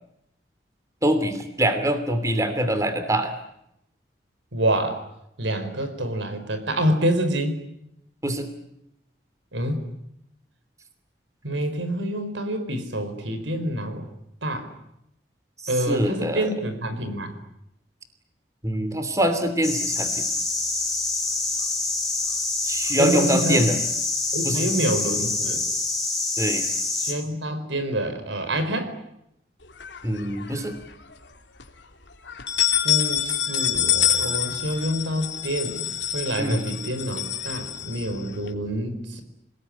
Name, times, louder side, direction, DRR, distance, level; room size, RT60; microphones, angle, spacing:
voice 1, 1.0-3.3 8.2-8.5 15.9-16.5 18.6-20.2 22.6-23.8 24.4-24.6 26.4-26.6 30.0-30.7 36.4-36.6, right 1 dB, 15° right, 9 dB, 2.9 m, -24 dB
voice 2, 4.5-5.0 5.4-7.6 9.5-9.9 11.4-14.1 14.4-14.7 15.7-17.3 23.0-23.6 24.3-25.6 27.0-29.0 32.8-35.9 36.1-39.2, right 1 dB, 85° right, 9 dB, 4.7 m, -27 dB
sound 1, 19.6-27.1, left 3 dB, ahead, 4.6 m, -26 dB
sound 2, 29.8-30.7 31.1-31.2 31.6-31.7 32.3-38.5, left 10 dB, 75° left, 2.9 m, -26 dB
27.5 x 20.0 x 9.9 m, 0.80 s
head